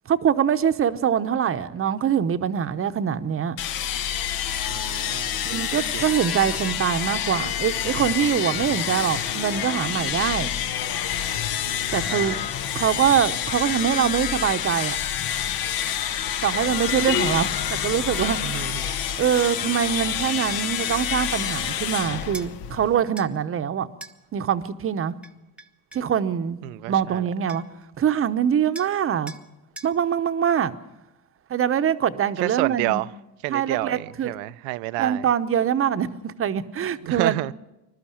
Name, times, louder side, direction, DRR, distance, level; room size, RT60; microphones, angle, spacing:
voice 1, 0.1-3.6 5.4-10.5 11.9-12.4 12.7-15.0 16.4-18.4 19.2-23.9 24.3-25.1 25.9-26.6 26.9-27.6 28.0-29.3 29.8-30.7 31.5-33.0 33.5-34.3 35.0-37.4, right 8 dB, 30° right, 0.9 m, -23 dB
sound 1, 3.6-23.0, left 10 dB, 60° left, 1.2 m, -28 dB
voice 2, 4.7-5.7 5.9-6.1 12.1-12.5 18.4-18.9 26.6-27.3 32.4-33.1 33.4-35.3 37.0-37.5, right 20 dB, 80° right, 0.7 m, -29 dB
sound 2, 22.3-22.5 23.2-23.3 24.0-24.2 25.2-26.1 27.1-27.2 27.5-27.8 28.7-29.0 29.3-29.4 29.8-29.9, right 2 dB, 5° right, 0.9 m, -41 dB
21.5 x 12.5 x 10.0 m
cardioid pair, 115°, 41 cm